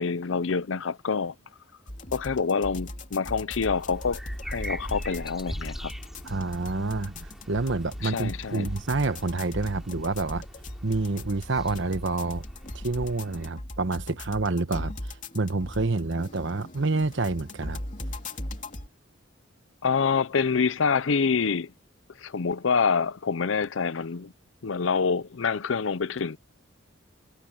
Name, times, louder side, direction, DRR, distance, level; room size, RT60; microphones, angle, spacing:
voice 1, 0.0-1.3 2.1-5.9 8.0-8.7 19.8-21.7 22.2-24.3 24.6-26.4, left 5 dB, 70° left, 0.6 m, -26 dB
sound 1, 1.9-18.9, left 1 dB, 40° left, 2.8 m, -39 dB
sound 2, 3.6-13.5, equal, ahead, 5.4 m, -41 dB
voice 2, 6.2-10.4 10.8-12.4 12.7-14.9 15.3-17.8, right 3 dB, 65° right, 1.1 m, -28 dB
head